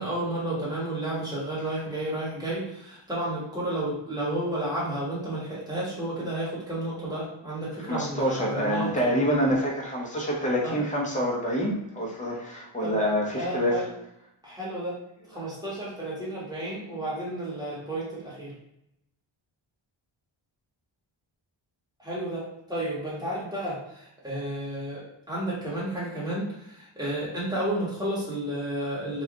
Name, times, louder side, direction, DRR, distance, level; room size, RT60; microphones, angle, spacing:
voice 1, 0.0-9.2 10.6-10.8 12.8-13.0 13.4-13.9 14.4-15.0 15.3-18.5 22.0-29.2, right 1 dB, 10° right, -7 dB, 1.4 m, -32 dB
voice 2, 7.9-13.8, equal, 15° left, -4 dB, 0.9 m, -26 dB
3.4 x 2.5 x 3.6 m, 0.80 s
wide cardioid pair, 155°, 49 cm